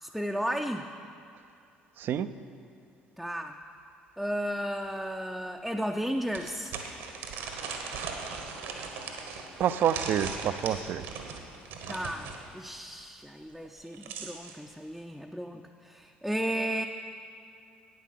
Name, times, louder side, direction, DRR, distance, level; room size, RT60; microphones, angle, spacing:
voice 1, 0.0-0.9 3.2-3.6 4.2-6.7 11.9-16.9, equal, ahead, 2 dB, 0.5 m, -34 dB
voice 2, 2.0-2.3 9.6-11.1, right 9 dB, 50° right, 13 dB, 0.4 m, -28 dB
sound 1, 4.8-4.9 5.4-5.5 6.3-12.4 13.6-14.6, right 5 dB, 65° right, 1.3 m, -39 dB
9.3 x 9.1 x 6.6 m, 2.5 s
figure-of-eight pair, 55°, 5 cm